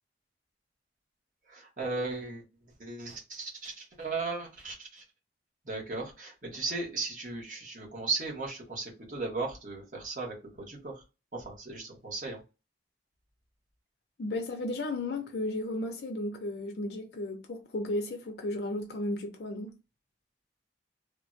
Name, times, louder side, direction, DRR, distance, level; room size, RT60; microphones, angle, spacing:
voice 1, 1.5-2.4 2.8-5.0 5.6-11.0 11.3-12.4, right 3 dB, 45° right, 1.2 m, -36 dB
voice 2, 14.2-19.8, left 2 dB, 65° left, 0.5 m, -34 dB
3.4 x 2.2 x 2.5 m
head